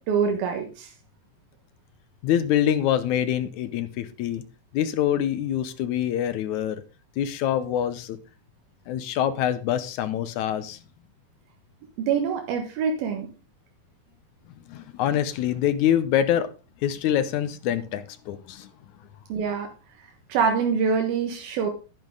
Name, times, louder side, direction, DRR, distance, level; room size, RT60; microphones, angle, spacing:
voice 1, 0.1-0.9 12.1-13.3 19.3-19.7 20.3-21.7, right 6 dB, 90° right, 4 dB, 3.3 m, -25 dB
voice 2, 2.2-4.4 4.7-6.8 7.2-8.2 8.9-10.8 14.7-16.5 16.8-18.7, left 10 dB, 75° left, 12 dB, 1.9 m, -25 dB
11.0 x 10.5 x 3.7 m, 0.31 s
omnidirectional pair, 4.1 m